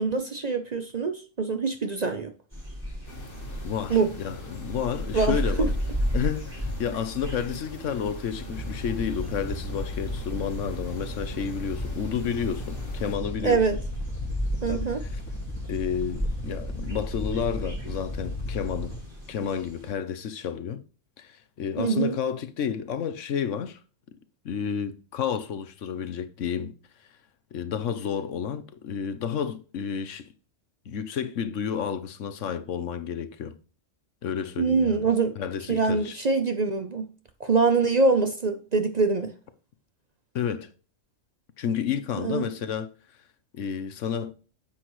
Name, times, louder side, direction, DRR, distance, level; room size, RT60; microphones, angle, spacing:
voice 1, 0.0-2.3 3.9-4.1 5.1-5.7 13.4-13.8 14.6-15.0 21.8-22.1 34.6-35.3 35.7-37.1 37.4-39.3 42.2-42.4, right 4 dB, 40° right, 0.7 m, -24 dB
sound 1, 2.5-19.9, equal, 20° right, 4.8 m, -35 dB
sound 2, 3.1-13.1, equal, 45° left, 1.8 m, -41 dB
voice 2, 3.6-5.7 6.1-13.6 14.7-15.2 15.7-18.9 19.3-20.8 21.2-23.8 24.4-26.7 27.5-30.2 30.9-33.6 34.2-35.1 35.4-36.2 40.3-40.7 41.6-42.9 43.5-44.3, left 7 dB, 75° left, 1.2 m, -31 dB
sound 3, 8.4-19.0, left 1 dB, 10° left, 1.9 m, -35 dB
10.0 x 7.5 x 3.1 m
omnidirectional pair, 1.3 m